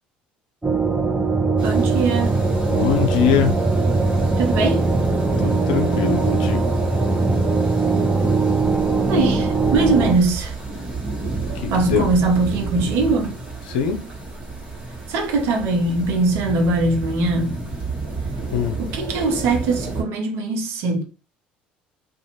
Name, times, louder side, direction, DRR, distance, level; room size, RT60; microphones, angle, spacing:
sound 1, 0.6-10.1, right 3 dB, 10° right, 0.7 m, -20 dB
sound 2, 1.6-20.0, right 3 dB, 25° right, 1.2 m, -32 dB
voice 1, 1.6-2.5 4.4-4.9 9.1-10.5 11.7-13.4 15.1-17.6 18.8-21.0, right 3 dB, 65° right, 0.8 m, -21 dB
voice 2, 2.7-3.6 5.4-6.7 11.5-12.1 13.7-14.0 18.5-18.8, left 8 dB, 75° left, 0.5 m, -22 dB
2.6 x 2.4 x 2.9 m
hypercardioid pair, 60°, 4 cm